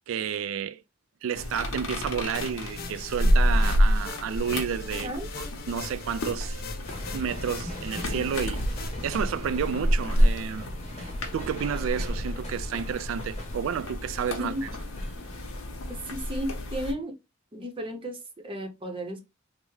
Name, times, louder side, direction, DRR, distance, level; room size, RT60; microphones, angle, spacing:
voice 1, 0.1-0.8 1.2-5.1 5.4-6.6 7.1-10.7 11.0-14.7, right 7 dB, 75° right, 0.3 m, -31 dB
sound 1, 1.3-16.9, equal, 85° left, 0.7 m, -29 dB
sound 2, 2.3-9.2, left 4 dB, 50° left, 0.5 m, -41 dB
sound 3, 6.8-16.2, left 1 dB, 30° left, 0.9 m, -43 dB
voice 2, 15.9-17.1 17.5-19.2, equal, 25° right, 0.6 m, -34 dB
3.4 x 2.0 x 3.1 m
head